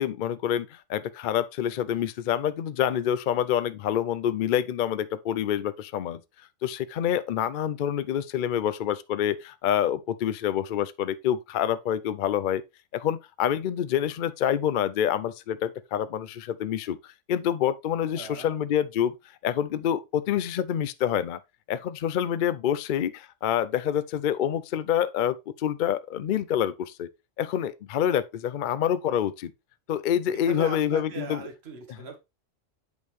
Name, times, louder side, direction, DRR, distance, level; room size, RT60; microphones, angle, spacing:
voice 1, 0.0-6.2 6.6-12.6 12.9-19.1 19.4-21.4 21.7-27.1 27.4-29.5 29.9-31.4, left 10 dB, 60° left, 0.5 m, -27 dB
voice 2, 18.1-18.5 30.4-32.2, right 4 dB, 60° right, 1.5 m, -39 dB
8.2 x 5.2 x 3.1 m
omnidirectional pair, 1.3 m